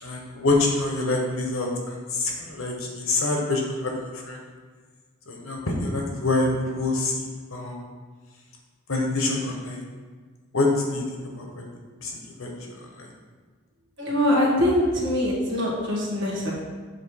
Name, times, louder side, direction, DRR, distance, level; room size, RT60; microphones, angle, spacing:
voice 1, 0.0-4.4 5.3-7.7 8.9-9.8 10.5-11.0 11.4-11.7 12.0-12.1 12.4-12.7 13.0-13.1, left 2 dB, 80° left, 1 dB, 1.2 m, -26 dB
voice 2, 14.0-16.5, left 1 dB, 60° right, -4 dB, 1.6 m, -23 dB
7.9 x 3.1 x 4.7 m, 1.5 s
head